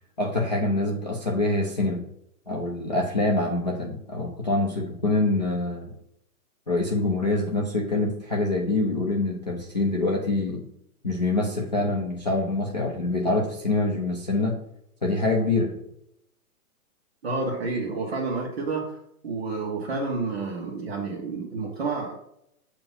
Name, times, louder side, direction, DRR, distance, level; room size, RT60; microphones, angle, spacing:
voice 1, 0.2-2.0 2.5-5.9 6.7-10.6 11.0-14.6 15.0-15.7, left 2 dB, 30° left, -3 dB, 0.5 m, -25 dB
voice 2, 17.2-19.0 19.2-22.2, right 3 dB, 45° right, -1 dB, 1.2 m, -29 dB
8.1 x 2.9 x 5.4 m, 0.77 s
hypercardioid pair, 175°, 45 cm